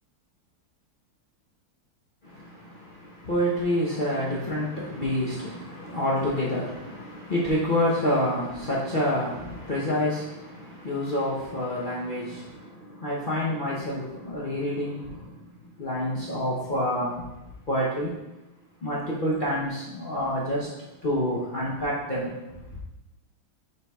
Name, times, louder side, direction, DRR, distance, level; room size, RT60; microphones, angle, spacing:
voice 1, 2.2-15.4 15.8-17.3 17.7-18.1 18.8-20.7 21.0-22.3, left 1 dB, 80° left, -7 dB, 0.4 m, -28 dB
9.3 x 4.3 x 2.3 m, 0.99 s
omnidirectional pair, 2.3 m